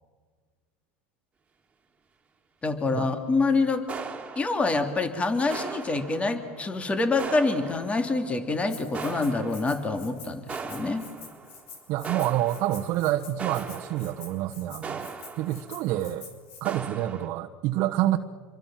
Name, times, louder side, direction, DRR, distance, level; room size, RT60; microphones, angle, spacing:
voice 1, 2.6-3.8 4.4-11.1, left 3 dB, 20° left, 7 dB, 2.7 m, -26 dB
sound 1, 3.9-5.1 5.5-6.8 7.2-8.4 8.9-10.1 10.5-11.7 12.0-16.0 16.6-17.3, right 5 dB, 15° right, 3.1 m, -39 dB
Rattle (instrument), 8.7-16.6, left 5 dB, 80° left, 6.1 m, -47 dB
voice 2, 11.9-16.3 16.6-18.2, right 14 dB, 55° right, 2 dB, 1.3 m, -28 dB
27.0 x 23.5 x 7.6 m, 1.5 s
supercardioid pair, 115°, 7 cm